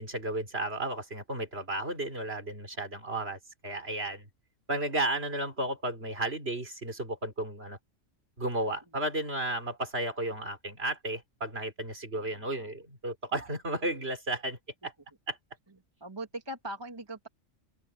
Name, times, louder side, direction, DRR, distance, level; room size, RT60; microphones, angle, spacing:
voice 1, 0.0-4.3 4.7-7.8 8.4-14.6 14.8-14.9 15.3-15.4, right 1 dB, 55° right, 4.8 m, -33 dB
voice 2, 12.1-12.7 16.0-17.3, right 1 dB, 20° right, 1.9 m, -41 dB
open air
omnidirectional pair, 1.3 m